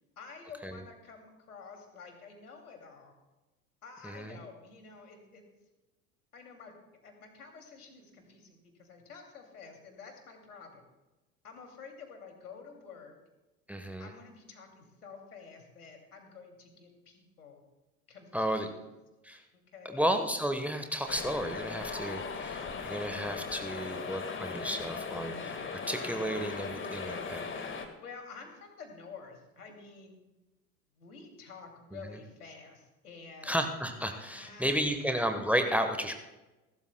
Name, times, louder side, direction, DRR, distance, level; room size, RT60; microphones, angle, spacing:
voice 1, 0.2-3.1 3.8-5.4 6.3-6.7 7.0-10.8 11.4-13.2 14.0-17.6 18.1-18.8 19.5-20.0 27.0-27.4 28.0-30.2 31.0-33.6 34.3-35.1, left 5 dB, 75° left, 4 dB, 2.6 m, -50 dB
voice 2, 4.0-4.3 13.7-14.1 18.3-18.7 19.2-19.4 19.8-27.4 33.4-36.1, equal, 5° right, 7 dB, 1.1 m, -32 dB
sound 1, 21.1-27.9, left 5 dB, 25° left, 1.7 m, -38 dB
29.0 x 12.5 x 2.2 m, 1.1 s
figure-of-eight pair, 70°, 45 cm